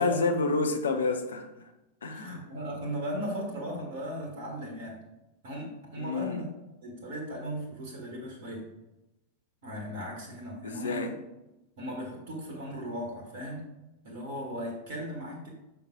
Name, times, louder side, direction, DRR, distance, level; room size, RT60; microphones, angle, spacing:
voice 1, 0.0-1.7 2.0-2.4 6.0-6.4 10.6-11.1, left 3 dB, 70° left, 6 dB, 0.8 m, -29 dB
voice 2, 2.0-5.0 5.4-6.5 6.8-8.7 9.6-11.1 11.8-13.7 14.0-15.5, equal, 50° right, 0 dB, 1.6 m, -37 dB
5.9 x 5.6 x 3.8 m, 0.97 s
figure-of-eight pair, 90°, 0 cm